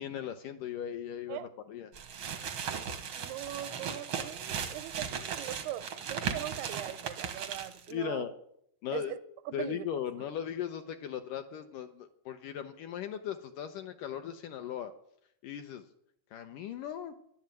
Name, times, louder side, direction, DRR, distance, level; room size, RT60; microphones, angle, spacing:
voice 1, 0.0-1.9 7.9-8.3 8.8-9.1 9.5-14.9 15.4-15.8 16.3-17.1, left 9 dB, 75° left, 2.1 m, -38 dB
sound 1, 1.9-7.9, right 7 dB, 70° right, 1.2 m, -37 dB
voice 2, 3.1-8.3 8.9-9.2 9.5-9.9, right 13 dB, 85° right, 2.6 m, -41 dB
11.5 x 11.5 x 9.0 m
omnidirectional pair, 4.5 m